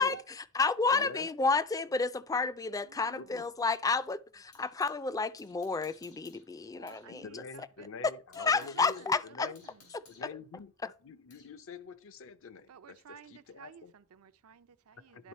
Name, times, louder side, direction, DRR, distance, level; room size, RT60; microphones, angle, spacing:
voice 1, 0.0-7.4 8.4-9.5 10.8-10.9, left 4 dB, 15° left, 0.3 m, -31 dB
voice 2, 0.9-1.3 3.2-3.5 7.1-9.0 9.3-9.6 10.1-10.7 11.0-13.9 15.0-15.3, left 4 dB, 65° left, 0.6 m, -46 dB
sound 1, 1.8-5.0 5.4-7.1 7.4-7.5 7.9-11.6, left 4 dB, 85° left, 2.9 m, -62 dB
voice 3, 2.8-3.5 6.7-7.9 8.6-9.9 12.7-15.3, right 7 dB, 85° right, 0.5 m, -54 dB
11.0 x 3.9 x 4.2 m
head